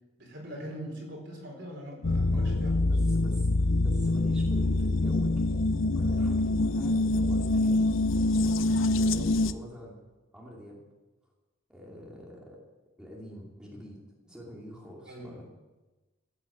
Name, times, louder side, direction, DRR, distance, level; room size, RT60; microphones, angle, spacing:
voice 1, 0.2-3.0 15.0-15.4, equal, 55° right, 0 dB, 4.5 m, -42 dB
sound 1, 2.0-9.5, left 2 dB, 75° left, 0.6 m, -25 dB
voice 2, 2.9-5.6 5.9-10.0 10.3-10.8 11.7-12.6 13.0-15.4, equal, 5° right, -4 dB, 2.6 m, -46 dB
14.5 x 8.7 x 8.7 m, 1.1 s
head